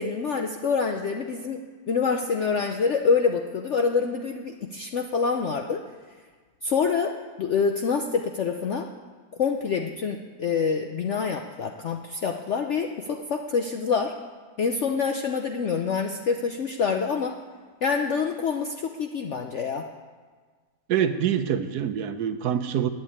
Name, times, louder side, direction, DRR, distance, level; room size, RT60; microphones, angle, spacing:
voice 1, 0.0-1.6 1.9-5.8 6.6-7.1 7.4-8.9 9.4-14.1 14.6-17.4 17.8-19.9, left 5 dB, 55° left, 4 dB, 0.8 m, -26 dB
voice 2, 20.9-22.9, right 9 dB, 75° right, 10 dB, 1.3 m, -25 dB
11.5 x 9.1 x 8.8 m, 1.5 s
omnidirectional pair, 1.8 m